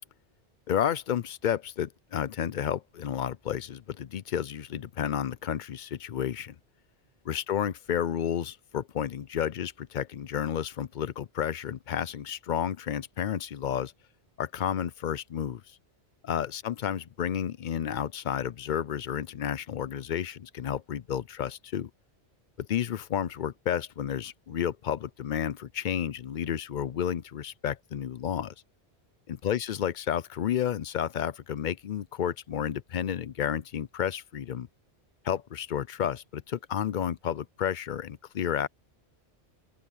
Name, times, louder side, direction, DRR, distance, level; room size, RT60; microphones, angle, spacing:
voice 1, 0.7-6.5 7.2-13.9 14.4-15.6 16.2-21.9 22.6-28.5 29.3-34.7 35.2-38.7, left 9 dB, 55° left, 0.7 m, -31 dB
open air
omnidirectional pair, 1.1 m